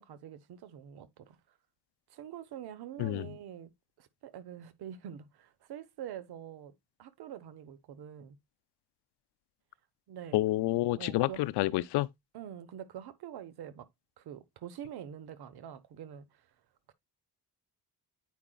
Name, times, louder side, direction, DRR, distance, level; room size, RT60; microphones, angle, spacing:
voice 1, 0.0-1.4 2.1-3.7 4.0-6.7 7.0-8.4 10.1-10.4 11.0-11.5 12.3-13.9 14.2-16.5 16.9-17.0, right 10 dB, 70° right, 1.0 m, -45 dB
voice 2, 3.0-3.3 10.3-12.1, left 17 dB, 80° left, 0.6 m, -29 dB
9.3 x 5.0 x 2.2 m
cardioid pair, 100°, 39 cm